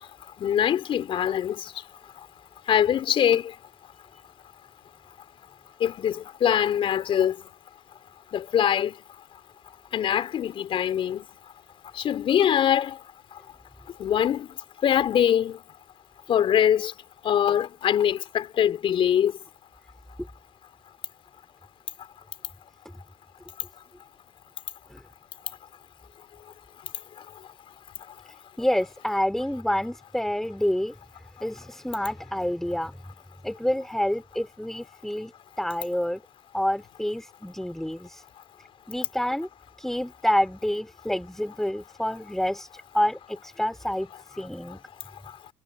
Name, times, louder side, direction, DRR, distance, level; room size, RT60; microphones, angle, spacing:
voice 1, 0.4-1.6 2.7-3.5 5.8-7.3 8.3-8.9 9.9-11.2 12.0-13.0 14.0-14.5 14.8-15.6 16.3-16.9 17.2-19.3, left 9 dB, 45° left, 3.8 m, -23 dB
voice 2, 28.6-31.0 31.4-33.0 33.4-35.3 35.6-36.2 36.5-38.2 38.9-39.5 39.8-44.8, left 1 dB, 5° left, 4.4 m, -28 dB
hypercardioid pair, 80°, 13 cm